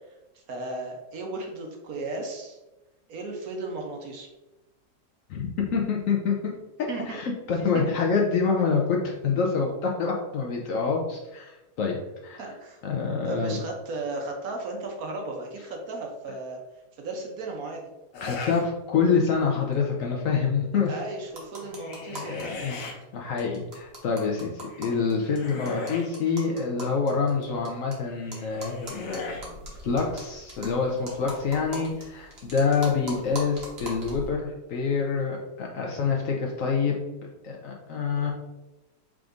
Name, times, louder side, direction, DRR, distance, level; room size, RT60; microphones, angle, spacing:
voice 1, 0.3-2.6 3.1-4.3 6.9-7.2 7.7-7.8 12.3-12.8 13.3-16.6 17.0-17.8 20.7-22.8 38.2-38.3, right 2 dB, 65° right, 1 dB, 1.1 m, -35 dB
voice 2, 5.3-6.5 6.8-11.5 11.8-12.0 12.2-12.5 12.8-13.6 18.2-21.0 22.6-22.8 23.1-29.5 29.8-37.0 37.4-38.3, left 5 dB, 65° left, 0 dB, 0.9 m, -26 dB
sound 1, 18.1-18.6 19.1-19.6 21.6-22.9 24.7-26.1 28.1-29.5, left 4 dB, 85° left, 1.4 m, -37 dB
sound 2, 21.3-22.4 22.7-22.8 23.0-23.1 23.4-27.9 28.3-34.3, right 1 dB, 40° right, 1.2 m, -41 dB
4.7 x 3.7 x 2.5 m, 1.0 s
omnidirectional pair, 1.8 m